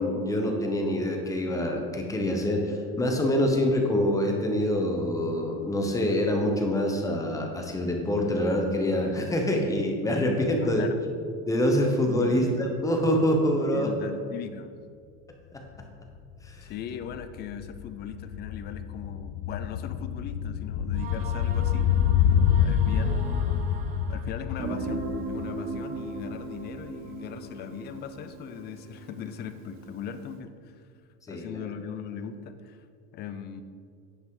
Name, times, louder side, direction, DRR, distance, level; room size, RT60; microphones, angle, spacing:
voice 1, 0.0-10.9 11.5-13.9 16.4-16.7 31.3-31.7, left 1 dB, 10° left, 2 dB, 0.9 m, -25 dB
voice 2, 10.6-11.0 12.2-12.4 13.7-14.8 16.6-21.9 22.6-23.7 24.1-30.8 31.3-32.8 33.1-33.6, left 8 dB, 30° left, 10 dB, 0.5 m, -39 dB
sound 1, 15.7-15.8 16.1-26.5 26.7-26.8, left 8 dB, 80° left, 0.6 m, -27 dB
sound 2, 20.9-24.7, right 6 dB, 25° right, 0.5 m, -43 dB
Guitar, 24.6-30.1, right 3 dB, 40° right, 1.1 m, -37 dB
10.0 x 7.1 x 3.8 m, 2.2 s
cardioid pair, 155°, 31 cm